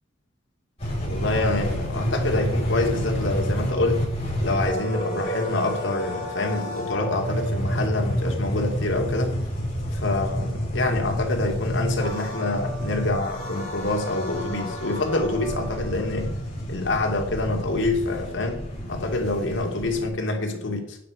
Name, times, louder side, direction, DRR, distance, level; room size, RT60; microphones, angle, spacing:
sound 1, 0.8-20.0, equal, 30° left, 5.8 m, -29 dB
voice 1, 1.1-4.0 4.4-9.4 9.9-16.3 16.7-21.0, left 2 dB, 70° left, 3 dB, 2.3 m, -26 dB
11.5 x 9.7 x 4.7 m, 0.75 s
head